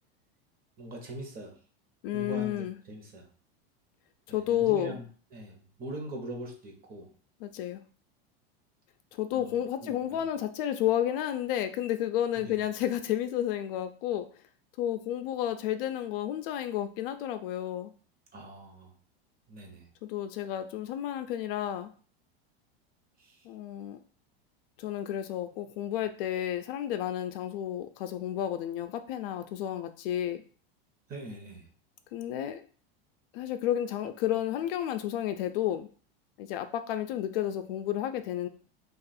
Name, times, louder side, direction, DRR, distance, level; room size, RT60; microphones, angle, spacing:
voice 1, 0.8-1.6 2.1-3.3 4.3-7.1 9.3-10.3 12.4-12.6 18.3-18.9 19.5-19.9 23.2-23.4 31.1-31.7, right 1 dB, 30° right, 2 dB, 0.9 m, -42 dB
voice 2, 2.0-2.8 4.3-5.0 7.4-7.8 9.1-14.3 14.8-17.9 20.0-21.9 23.4-24.0 24.8-30.4 32.1-32.6 33.3-35.9 36.4-38.5, left 11 dB, 65° left, 9 dB, 0.4 m, -31 dB
2.6 x 2.4 x 4.1 m, 0.42 s
supercardioid pair, 120°, 30 cm